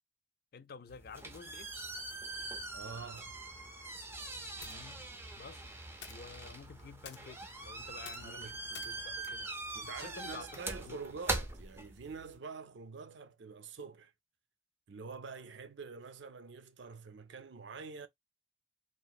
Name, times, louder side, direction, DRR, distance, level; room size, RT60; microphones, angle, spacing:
voice 1, 0.5-1.7 4.6-5.1 5.4-5.7 6.1-9.5 9.9-10.5 10.8-11.0, left 5 dB, 50° left, 0.4 m, -51 dB
sound 1, 0.9-12.3, right 2 dB, 15° right, 0.5 m, -42 dB
voice 2, 2.7-3.4 8.2-8.6 9.7-14.1 14.9-18.1, right 4 dB, 70° right, 0.5 m, -46 dB
sound 2, 4.6-10.7, left 8 dB, 80° left, 0.7 m, -56 dB
2.9 x 2.5 x 2.3 m
head